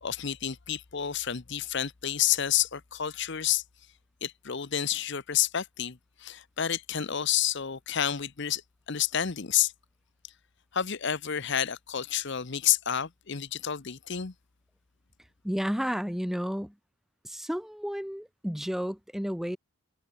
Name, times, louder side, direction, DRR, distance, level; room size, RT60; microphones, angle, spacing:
voice 1, 0.0-3.6 4.2-8.6 8.9-9.7 10.7-14.3, left 10 dB, 55° left, 0.9 m, -29 dB
voice 2, 15.4-16.7 17.2-19.6, equal, ahead, 0.6 m, -32 dB
head